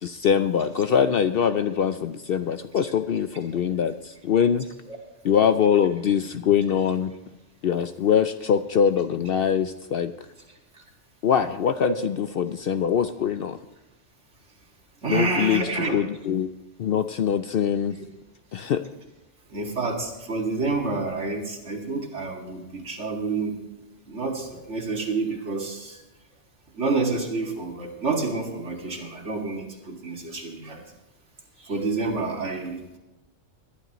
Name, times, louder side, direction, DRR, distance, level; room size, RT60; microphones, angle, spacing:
voice 1, 0.0-4.7 5.2-7.1 7.6-10.1 11.2-13.6 15.1-15.6 15.9-16.5 16.8-18.0 18.5-18.8, left 8 dB, 60° left, 10 dB, 0.6 m, -23 dB
voice 2, 15.0-16.0 19.5-23.6 24.1-26.0 26.7-30.8 31.6-33.0, right 3 dB, 65° right, 0 dB, 2.5 m, -28 dB
21.0 x 11.5 x 3.0 m, 0.99 s
omnidirectional pair, 1.3 m